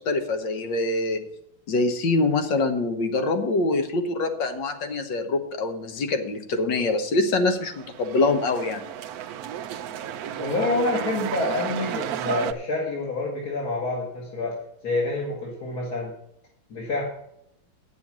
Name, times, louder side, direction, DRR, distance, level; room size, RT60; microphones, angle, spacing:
voice 1, 0.1-1.2 1.7-8.8, left 2 dB, 70° left, 7 dB, 1.8 m, -24 dB
sound 1, 7.6-12.5, right 10 dB, 65° right, 0.9 m, -32 dB
voice 2, 10.4-14.6 14.8-16.1 16.7-17.1, left 2 dB, 50° left, -4 dB, 2.4 m, -27 dB
9.2 x 6.9 x 7.3 m, 0.78 s
omnidirectional pair, 2.1 m